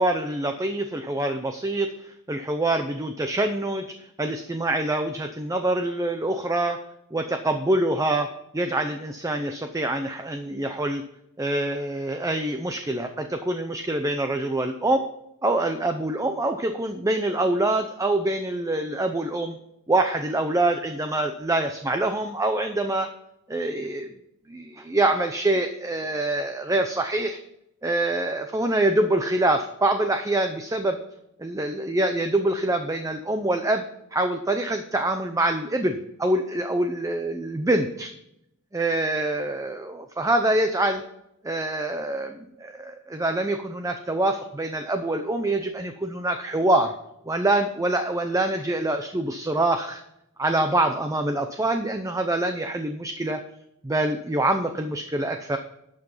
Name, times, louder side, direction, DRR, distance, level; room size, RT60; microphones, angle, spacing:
voice 1, 0.0-6.8 7.1-8.3 8.5-11.0 11.4-15.1 15.4-19.6 19.9-23.1 23.5-24.1 24.5-27.4 27.8-31.0 31.4-33.8 34.1-38.1 38.7-41.0 41.4-46.9 47.3-50.0 50.4-53.4 53.8-55.6, right 2 dB, 15° right, 6 dB, 0.6 m, -25 dB
11.5 x 6.0 x 5.5 m, 0.81 s
head